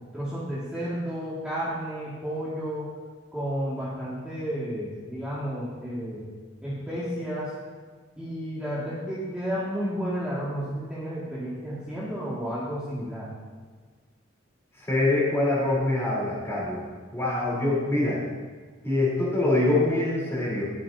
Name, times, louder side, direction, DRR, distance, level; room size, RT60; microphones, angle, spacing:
voice 1, 0.1-2.9 3.3-6.2 6.6-7.5 8.2-13.3, equal, 5° right, -11 dB, 2.0 m, -32 dB
voice 2, 14.9-16.8 17.1-18.2 18.8-20.7, left 2 dB, 15° left, -6 dB, 3.7 m, -24 dB
22.0 x 7.5 x 2.8 m, 1.5 s
head